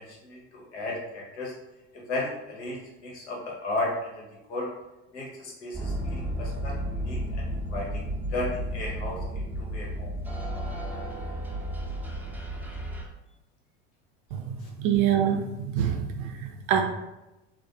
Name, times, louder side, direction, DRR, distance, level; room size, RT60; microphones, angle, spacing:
voice 1, 0.0-1.6 1.9-4.7 5.1-10.1 14.6-14.7, left 2 dB, 85° left, -2 dB, 0.9 m, -35 dB
sound 1, 5.7-13.0, equal, 5° right, 0.6 m, -33 dB
voice 2, 14.5-16.8, right 9 dB, 60° right, 5 dB, 0.5 m, -26 dB
2.4 x 2.1 x 2.7 m, 0.99 s
hypercardioid pair, 85°, 34 cm